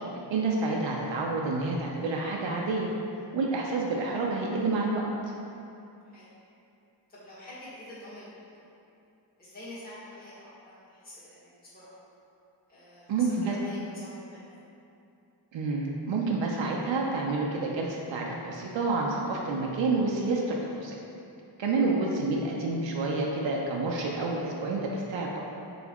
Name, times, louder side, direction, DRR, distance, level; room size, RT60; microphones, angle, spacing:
voice 1, 0.3-2.9 3.3-5.0 13.1-13.5 15.5-21.0 21.6-25.4, right 3 dB, 80° right, -2 dB, 0.5 m, -29 dB
voice 2, 7.1-8.6 9.4-12.0 12.7-14.5, left 1 dB, 20° left, -11 dB, 1.3 m, -46 dB
4.0 x 3.3 x 2.9 m, 2.7 s
cardioid pair, 60°, 45 cm